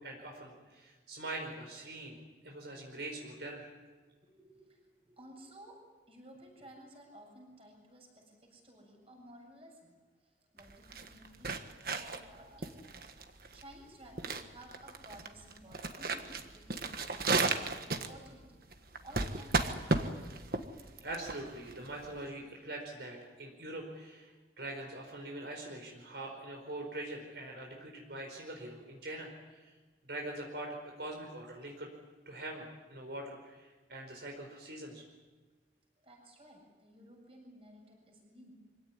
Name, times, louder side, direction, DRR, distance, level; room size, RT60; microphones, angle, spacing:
voice 1, 0.0-2.2 2.4-3.7 21.0-29.7 30.1-31.9 32.2-35.0, right 1 dB, 75° right, 1 dB, 4.8 m, -43 dB
voice 2, 4.2-5.8 6.1-9.9 10.2-13.1 13.5-18.6 19.0-20.3 36.0-38.5, right 1 dB, 35° right, 0 dB, 7.3 m, -55 dB
sound 1, 10.6-22.2, right 3 dB, 55° right, 1.5 m, -35 dB
25.5 x 17.0 x 9.9 m, 1.3 s
head